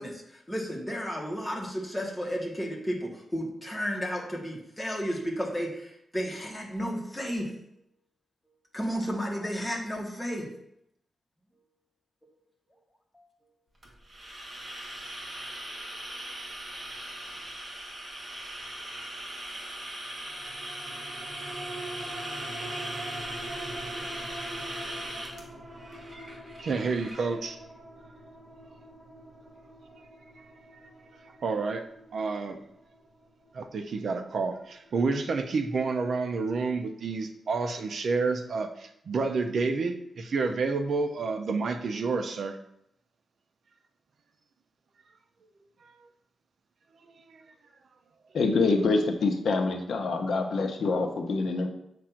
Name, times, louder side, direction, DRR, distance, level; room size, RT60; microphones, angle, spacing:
voice 1, 0.0-7.5 8.7-10.5 13.1-13.3, equal, 5° left, -1 dB, 1.2 m, -33 dB
sound 1, 13.8-27.3, right 1 dB, 30° right, 1.3 m, -39 dB
sound 2, 20.3-35.0 35.4-35.5, right 1 dB, 15° right, 2.0 m, -44 dB
voice 2, 26.6-27.6 30.4-30.5 30.7-30.8 31.4-31.9 32.1-32.6 33.5-42.6 47.1-47.4, right 4 dB, 55° right, 7 dB, 0.5 m, -29 dB
voice 3, 48.3-51.7, left 3 dB, 70° left, 4 dB, 0.8 m, -26 dB
7.4 x 2.5 x 5.7 m, 0.77 s
wide cardioid pair, 175°, 0 cm